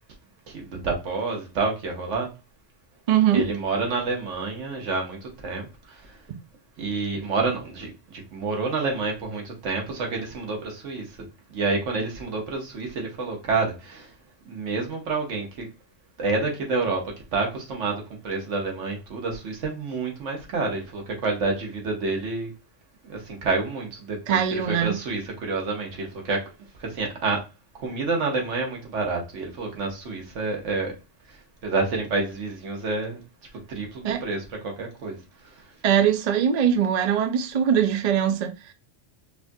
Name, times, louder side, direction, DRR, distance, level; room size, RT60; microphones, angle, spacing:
voice 1, 0.5-2.3 3.3-6.2 6.8-11.2 11.5-14.1 14.5-15.7 16.2-22.5 23.0-26.5 26.8-27.4 27.7-30.9 31.3-31.4 31.6-33.2 33.7-35.2 35.4-35.6, right 3 dB, 90° right, 1.4 m, -28 dB
voice 2, 3.1-3.4 6.3-6.4 24.3-25.0 34.0-34.2 35.8-38.5, right 9 dB, 50° right, 0.5 m, -21 dB
4.9 x 2.4 x 2.6 m
omnidirectional pair, 1.2 m